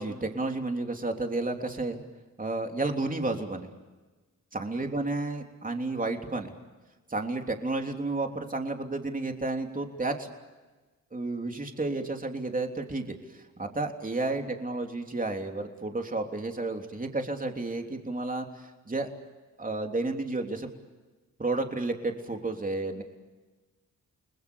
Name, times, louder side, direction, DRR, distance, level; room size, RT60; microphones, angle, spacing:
voice 1, 0.0-2.0 2.4-3.7 4.5-6.5 7.1-10.3 11.1-19.1 19.6-20.7 21.4-23.0, right 2 dB, 25° right, 4 dB, 3.3 m, -31 dB
29.5 x 21.0 x 7.0 m, 1.2 s
cardioid pair, 70°, 33 cm